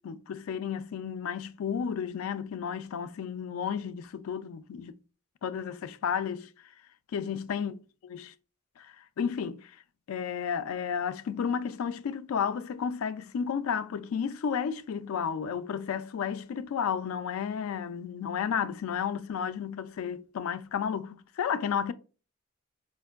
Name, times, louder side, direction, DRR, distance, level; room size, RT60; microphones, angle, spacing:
voice 1, 0.0-4.9 5.4-6.5 7.1-7.8 8.1-8.3 8.8-9.7 10.1-21.9, left 7 dB, 80° left, 0.3 m, -32 dB
4.3 x 2.5 x 2.4 m
head